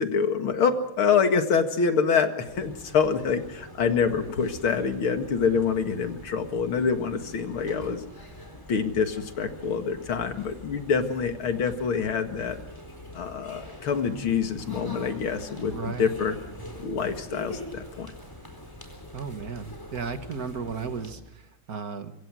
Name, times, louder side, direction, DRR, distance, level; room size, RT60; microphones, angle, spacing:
voice 1, 0.0-8.0 8.7-12.6 13.1-16.4 16.8-18.1, left 6 dB, 85° left, 7 dB, 2.7 m, -26 dB
sound 1, 2.5-21.1, equal, 10° left, 4.1 m, -44 dB
voice 2, 15.7-16.1 19.1-22.1, right 5 dB, 50° right, 9 dB, 1.7 m, -35 dB
25.0 x 24.5 x 6.3 m, 0.79 s
omnidirectional pair, 2.2 m